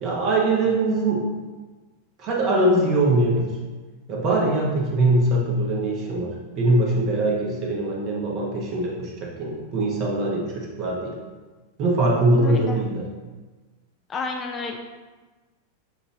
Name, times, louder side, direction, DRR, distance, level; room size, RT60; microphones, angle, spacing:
voice 1, 0.0-1.2 2.2-3.5 4.1-11.1 11.8-13.0, right 2 dB, 35° right, -2 dB, 1.0 m, -22 dB
voice 2, 12.4-12.8 14.1-14.8, left 4 dB, 25° left, 2 dB, 0.4 m, -30 dB
6.6 x 2.6 x 3.0 m, 1.3 s
figure-of-eight pair, 90°, 0 cm